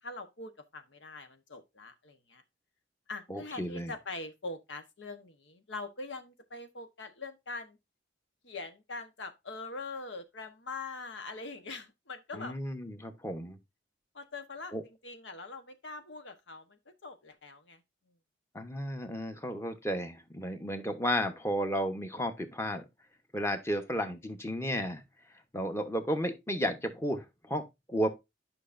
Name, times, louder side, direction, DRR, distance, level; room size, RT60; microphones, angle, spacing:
voice 1, 0.0-2.4 3.1-7.8 8.4-12.6 14.1-17.8, left 3 dB, 75° left, 1.2 m, -43 dB
voice 2, 3.3-3.9 12.3-13.6 14.7-14.8 18.5-22.9 23.3-25.0 25.5-28.1, equal, 15° left, 1.1 m, -33 dB
11.0 x 5.8 x 2.6 m
head